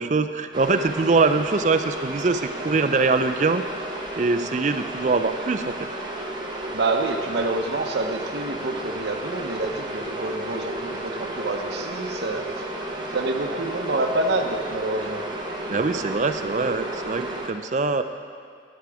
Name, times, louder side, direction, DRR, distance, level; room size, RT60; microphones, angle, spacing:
voice 1, 0.0-3.6 4.2-5.7 15.7-18.0, right 3 dB, 40° right, 10 dB, 0.4 m, -23 dB
sound 1, 0.5-17.5, right 1 dB, 25° right, 0.9 m, -33 dB
voice 2, 6.7-12.4 13.1-15.2, right 2 dB, 65° right, 5 dB, 0.8 m, -27 dB
13.5 x 10.5 x 3.5 m, 2.1 s
head